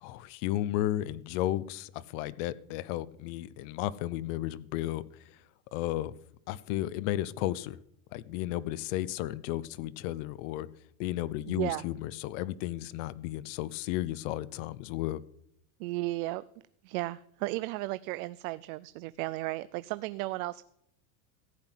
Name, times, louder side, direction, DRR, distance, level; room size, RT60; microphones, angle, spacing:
voice 1, 0.0-5.0 5.7-6.1 6.5-7.8 8.1-10.7 11.0-15.2, left 14 dB, 60° left, 17 dB, 0.7 m, -33 dB
voice 2, 11.5-11.8 15.8-16.4 16.8-20.6, right 19 dB, 70° right, 16 dB, 0.6 m, -34 dB
15.0 x 5.9 x 9.1 m, 0.74 s
supercardioid pair, 155°, 43 cm